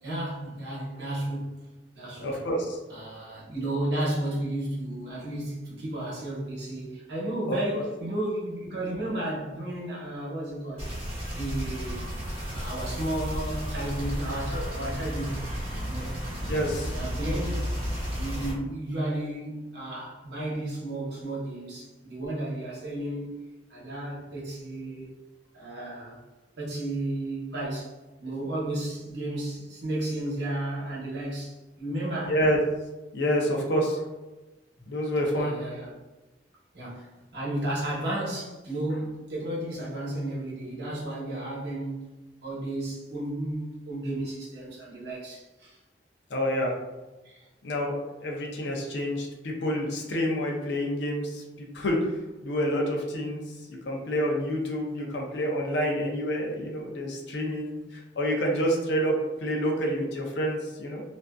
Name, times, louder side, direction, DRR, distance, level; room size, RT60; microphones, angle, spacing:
voice 1, 0.0-1.7 1.9-2.4 2.9-10.9 11.3-12.1 12.5-15.4 15.9-16.1 16.9-17.5 18.1-25.1 25.5-26.2 26.6-27.9 28.2-32.4 35.3-36.0 36.7-42.1 42.4-45.8 47.2-47.4, right 1 dB, 65° right, -6 dB, 0.9 m, -33 dB
voice 2, 2.2-2.8 7.5-7.8 16.5-17.0 32.2-32.6 33.1-34.0 34.9-35.5 46.3-46.7 47.6-52.0 52.4-53.4 53.7-57.8 58.2-61.0, equal, 70° left, 0 dB, 0.5 m, -28 dB
sound 1, 10.8-18.5, equal, 30° right, 1.1 m, -33 dB
2.5 x 2.3 x 2.2 m, 1.1 s
head